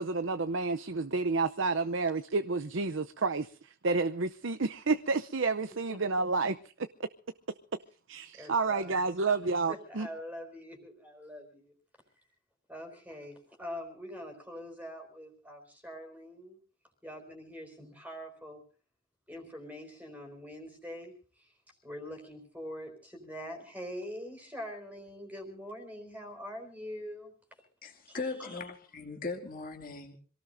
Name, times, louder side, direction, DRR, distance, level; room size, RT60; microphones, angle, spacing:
voice 1, 0.0-6.9 8.1-10.1, right 3 dB, 60° right, 0.7 m, -30 dB
voice 2, 8.3-8.9 9.7-11.7 12.7-16.6 17.0-18.6 19.3-21.5 21.8-27.3 28.1-28.5, equal, 5° right, 4.2 m, -44 dB
voice 3, 27.8-30.2, left 3 dB, 40° left, 2.6 m, -39 dB
26.5 x 18.0 x 2.7 m
head